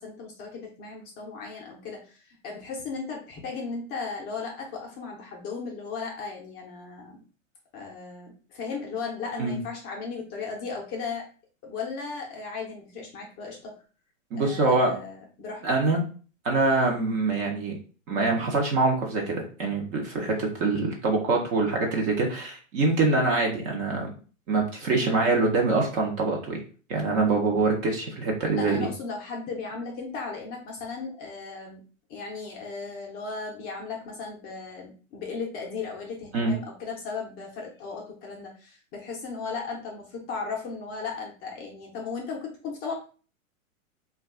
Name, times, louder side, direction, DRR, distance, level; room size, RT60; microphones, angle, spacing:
voice 1, 0.0-7.2 7.7-11.2 11.6-13.7 14.3-15.7 20.3-20.6 25.0-25.2 28.6-31.8 32.1-42.9, left 4 dB, 25° left, -1 dB, 0.5 m, -36 dB
voice 2, 14.3-14.9 15.6-16.0 16.4-17.8 18.1-24.1 24.5-26.6 26.9-28.9 36.3-36.5, right 3 dB, 30° right, 1 dB, 0.5 m, -24 dB
2.3 x 2.3 x 3.4 m, 0.38 s
hypercardioid pair, 130°, 41 cm